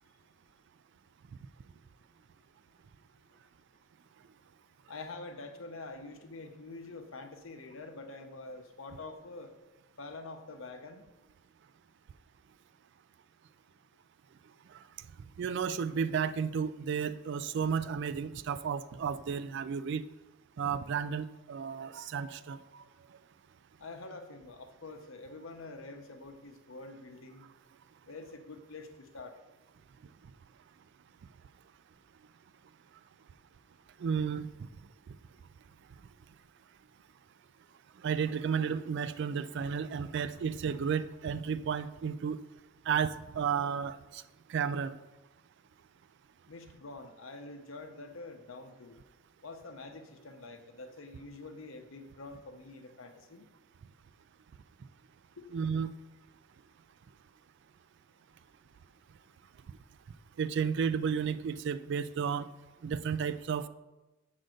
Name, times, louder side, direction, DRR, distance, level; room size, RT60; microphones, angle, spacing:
voice 1, 4.9-9.5 10.0-11.0 23.8-27.5 28.1-29.3 46.5-49.0 49.4-53.4 55.4-55.5, left 3 dB, 70° left, 6 dB, 0.8 m, -46 dB
voice 2, 15.4-20.0 20.6-22.8 34.0-34.5 38.0-42.4 42.9-44.2 44.5-45.0 55.5-55.9 60.4-62.5 62.8-63.7, right 6 dB, 55° right, 14 dB, 0.3 m, -32 dB
7.6 x 3.9 x 6.3 m, 1.1 s
head